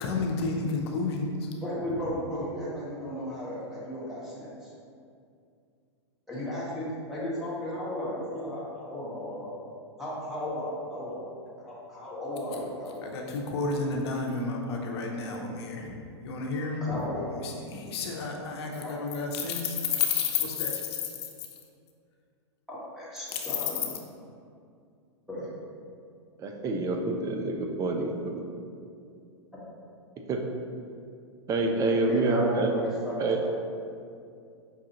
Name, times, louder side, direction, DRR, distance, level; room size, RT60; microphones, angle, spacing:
voice 1, 0.0-1.5 13.0-15.9 16.2-21.1, left 4 dB, 60° left, 1 dB, 0.7 m, -31 dB
voice 2, 1.6-4.7 6.3-9.5 10.0-11.2 11.6-13.2 16.8-17.3 18.8-18.9 22.7-24.0 25.3-25.5 32.1-33.5, left 1 dB, ahead, -8 dB, 1.1 m, -35 dB
voice 3, 26.4-28.1 30.3-30.4 31.5-32.7 33.2-33.4, right 3 dB, 20° right, 3 dB, 0.4 m, -27 dB
5.2 x 2.4 x 2.8 m, 2.4 s
hypercardioid pair, 110°, 15 cm